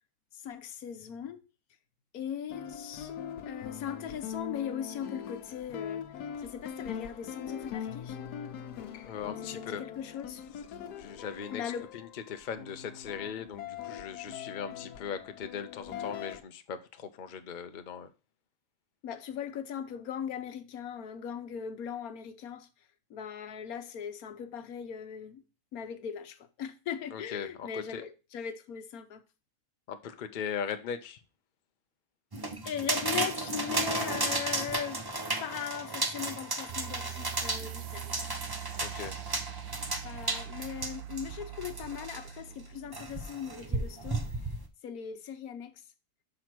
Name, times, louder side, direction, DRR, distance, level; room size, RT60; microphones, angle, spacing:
voice 1, 0.3-1.4 2.1-3.2 3.5-6.1 6.4-8.2 9.5-10.4 11.5-12.0 19.0-22.7 23.1-25.4 25.7-29.2 32.3-35.0 35.4-38.2 40.0-44.3 44.8-45.8, left 8 dB, 70° left, 1.2 m, -39 dB
sound 1, 2.5-16.4, left 8 dB, 90° left, 1.3 m, -42 dB
voice 2, 9.0-9.8 11.0-11.6 11.9-18.1 27.1-28.0 29.9-31.2 38.8-39.1, left 7 dB, 50° left, 0.6 m, -39 dB
sound 2, 32.3-42.3 42.9-44.7, right 2 dB, 20° right, 0.7 m, -34 dB
sound 3, 36.7-43.8, right 13 dB, 75° right, 1.1 m, -43 dB
6.2 x 4.7 x 5.9 m
omnidirectional pair, 1.6 m